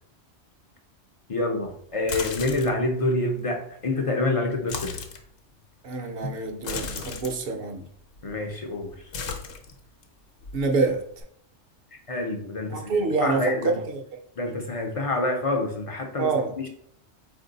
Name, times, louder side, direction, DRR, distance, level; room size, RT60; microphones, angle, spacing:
voice 1, 1.3-4.9 8.2-8.9 12.1-13.8 14.4-16.7, left 2 dB, 45° left, 0.4 m, -27 dB
Pouring Soup in a Metal Pan - Quick Short Gross, 1.9-2.8 4.5-5.2 6.6-7.4 8.2-8.6 8.8-10.0 10.4-11.2, left 5 dB, 75° left, 0.9 m, -35 dB
voice 2, 5.8-7.9 10.5-11.0 12.7-14.0 16.2-16.6, right 4 dB, 60° right, 0.8 m, -26 dB
4.3 x 2.6 x 3.8 m
omnidirectional pair, 1.2 m